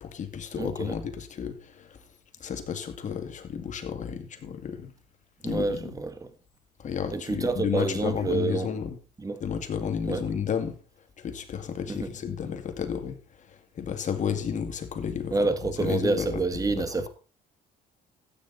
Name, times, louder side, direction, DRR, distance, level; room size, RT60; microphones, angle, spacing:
voice 1, 0.0-2.0 2.4-4.9 5.4-5.9 6.8-9.0 9.4-10.8 11.2-17.1, left 7 dB, 45° left, 2.2 m, -32 dB
voice 2, 0.5-1.0 5.4-6.3 7.1-8.7 9.2-9.4 10.1-10.2 11.9-12.1 15.3-17.1, right 3 dB, 20° right, 1.6 m, -28 dB
14.5 x 9.1 x 4.2 m
cardioid pair, 110°, 17 cm